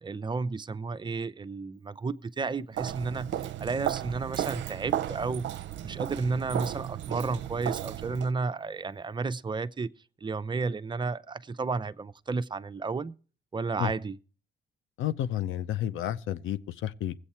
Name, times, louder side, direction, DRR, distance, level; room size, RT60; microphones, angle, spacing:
voice 1, 0.0-3.3 3.6-5.5 5.8-9.9 10.2-13.1 13.5-14.2, right 4 dB, 25° right, 0.6 m, -32 dB
Walk footsteps, 2.7-8.3, right 11 dB, 70° right, 0.6 m, -34 dB
voice 2, 15.0-17.1, left 11 dB, 80° left, 0.7 m, -31 dB
19.5 x 8.1 x 4.3 m
cardioid pair, 90°, 20 cm